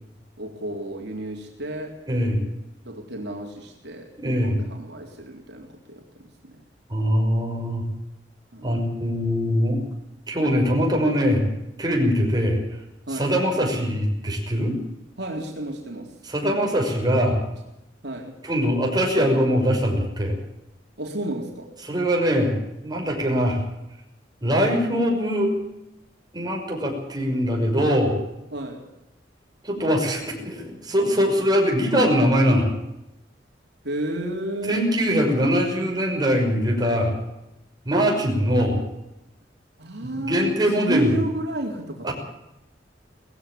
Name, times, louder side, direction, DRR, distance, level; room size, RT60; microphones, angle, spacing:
voice 1, 0.4-2.0 2.9-6.6 8.5-8.8 13.1-13.3 15.2-16.1 18.0-18.4 21.0-21.8 28.5-28.8 33.8-34.9 39.8-42.1, right 1 dB, 65° right, 1 dB, 3.9 m, -32 dB
voice 2, 2.1-2.4 4.2-4.6 6.9-7.8 8.6-9.8 10.3-11.4 11.8-12.6 13.1-14.8 16.2-17.4 18.4-20.4 21.8-22.6 22.8-23.6 24.4-25.5 26.3-28.2 29.6-32.7 34.7-37.1 37.8-38.8 40.0-41.2 42.0-42.1, equal, 25° right, 1 dB, 6.1 m, -22 dB
19.5 x 15.5 x 8.6 m, 0.90 s
head